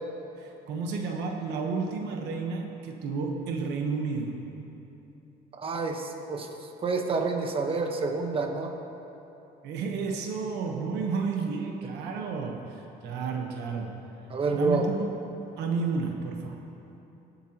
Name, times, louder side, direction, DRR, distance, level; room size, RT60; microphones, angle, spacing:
voice 1, 0.4-4.5 9.6-14.1 14.5-15.0 15.6-16.6, right 4 dB, 85° right, 2 dB, 1.1 m, -31 dB
voice 2, 5.5-6.5 6.8-8.7 14.3-14.9, right 4 dB, 35° right, 3 dB, 1.1 m, -28 dB
21.0 x 8.2 x 3.0 m, 3.0 s
cardioid pair, 110°, 17 cm